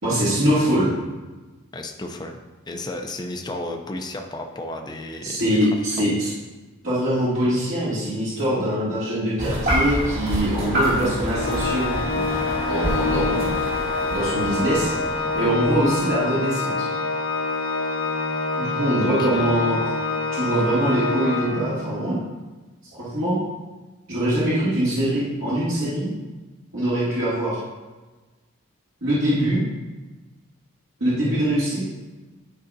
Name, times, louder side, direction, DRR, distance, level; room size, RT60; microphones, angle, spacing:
voice 1, 0.0-0.9 5.2-6.3 6.8-11.9 12.7-13.5 14.1-16.9 18.6-19.8 20.3-22.2 22.9-23.4 24.1-26.1 26.7-27.6 29.0-29.6 31.0-31.8, right 1 dB, 70° right, -10 dB, 2.3 m, -23 dB
voice 2, 1.7-2.4 2.7-5.7 6.0-6.1 19.0-19.5, left 1 dB, 20° left, 3 dB, 0.5 m, -33 dB
sound 1, 9.4-16.0, equal, 50° right, 2.3 m, -27 dB
Organ, 11.3-22.1, left 3 dB, 85° left, 1.3 m, -26 dB
11.0 x 4.9 x 2.7 m, 1.2 s
head